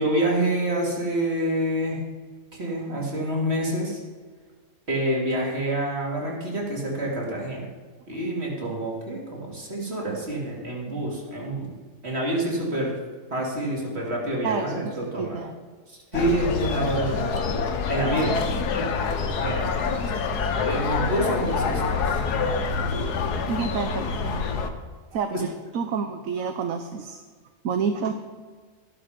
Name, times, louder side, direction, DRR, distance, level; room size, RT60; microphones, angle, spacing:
voice 1, 0.0-2.0 2.5-4.0 4.9-7.6 8.1-11.7 12.0-13.0 13.3-15.4 15.9-17.3 17.9-18.4 19.4-19.9 20.6-22.2 25.3-25.4, right 1 dB, 40° right, -3 dB, 3.2 m, -27 dB
voice 2, 15.2-15.5 23.5-24.5 25.1-25.5 25.7-27.2 27.6-28.1, right 6 dB, 60° right, 7 dB, 1.1 m, -29 dB
sound 1, 16.1-24.7, left 4 dB, 75° left, 1.6 m, -26 dB
sound 2, 17.4-18.5, left 12 dB, 45° left, 1.2 m, -39 dB
13.5 x 11.5 x 5.2 m, 1.5 s
omnidirectional pair, 1.7 m